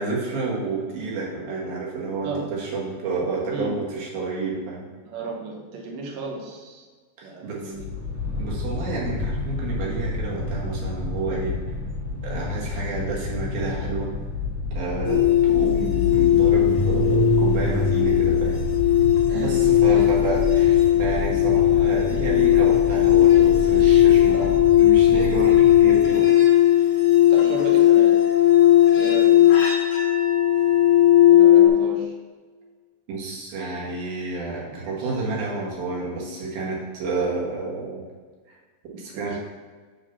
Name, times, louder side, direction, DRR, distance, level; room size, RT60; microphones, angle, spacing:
voice 1, 0.0-4.9 7.2-7.8 8.4-11.5 12.2-14.1 14.7-18.6 19.3-24.3 24.8-26.3 33.1-38.0 38.9-39.4, right 3 dB, 60° right, -4 dB, 3.1 m, -29 dB
voice 2, 5.1-6.9 7.2-7.9 19.3-19.5 19.9-20.0 24.3-24.6 27.3-28.2 28.9-29.5 31.3-32.1 39.1-39.4, right 3 dB, 80° right, -1 dB, 1.9 m, -34 dB
sound 1, 7.7-26.1, left 1 dB, 35° right, 2.8 m, -29 dB
sound 2, 15.0-31.7, left 12 dB, 65° left, 1.8 m, -17 dB
7.4 x 5.0 x 5.7 m, 1.4 s
omnidirectional pair, 5.4 m